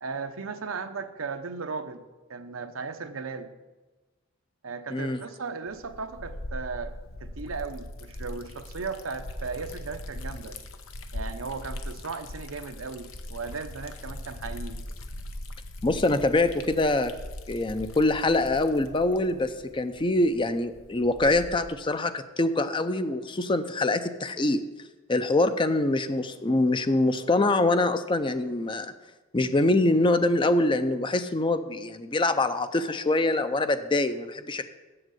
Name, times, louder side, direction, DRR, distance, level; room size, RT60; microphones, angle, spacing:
voice 1, 0.0-2.0 2.3-3.5 4.6-10.6 11.1-14.8, right 4 dB, 85° right, 8 dB, 0.8 m, -36 dB
Liquid, 5.7-21.8, left 1 dB, 85° left, 0.9 m, -40 dB
voice 2, 15.8-17.1 17.5-24.6 25.1-28.9 29.3-34.7, left 2 dB, 25° left, 10 dB, 0.5 m, -24 dB
7.8 x 7.4 x 7.7 m, 1.2 s
head